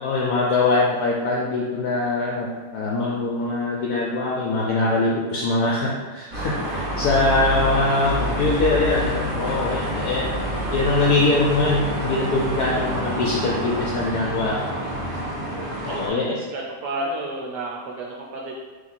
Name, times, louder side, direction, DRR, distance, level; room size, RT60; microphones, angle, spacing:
voice 1, 0.0-10.3 10.7-14.6 15.8-16.4, left 2 dB, 75° left, -4 dB, 0.9 m, -22 dB
sound 1, 6.3-16.1, equal, 35° right, 0.9 m, -27 dB
voice 2, 15.9-18.5, right 2 dB, 75° right, -2 dB, 1.0 m, -31 dB
3.4 x 2.9 x 4.1 m, 1.4 s
omnidirectional pair, 2.2 m